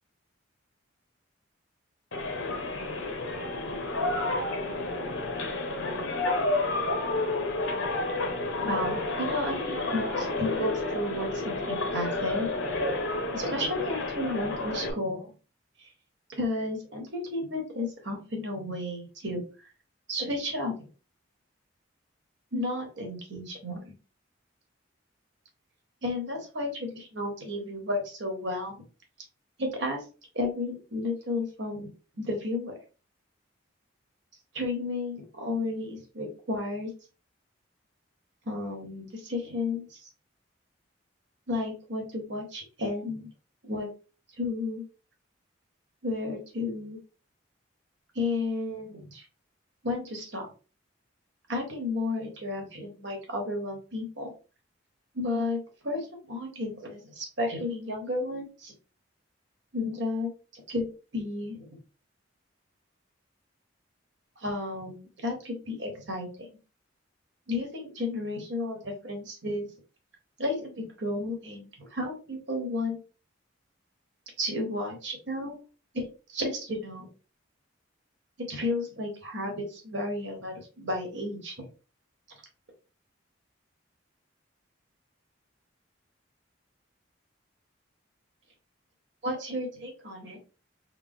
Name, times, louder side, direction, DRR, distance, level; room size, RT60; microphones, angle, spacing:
sound 1, 2.1-14.9, left 2 dB, 80° left, 0.9 m, -30 dB
voice 1, 8.5-12.5 13.3-15.3 15.8-15.9 16.3-19.4 20.1-20.9 22.5-23.8 26.0-28.8 29.6-30.0 30.3-31.9 32.2-32.7 34.5-36.9 38.5-40.0 41.5-43.3 43.6-43.9 44.4-44.8 46.0-47.0 48.1-49.2 49.8-50.5 51.5-54.3 55.1-58.7 59.7-60.9 61.1-61.7 64.4-66.3 67.5-69.7 70.4-73.0 74.4-75.6 75.9-77.1 78.5-81.7 89.2-90.4, left 2 dB, 60° right, 2 dB, 1.3 m, -32 dB
4.2 x 2.2 x 3.6 m, 0.34 s
head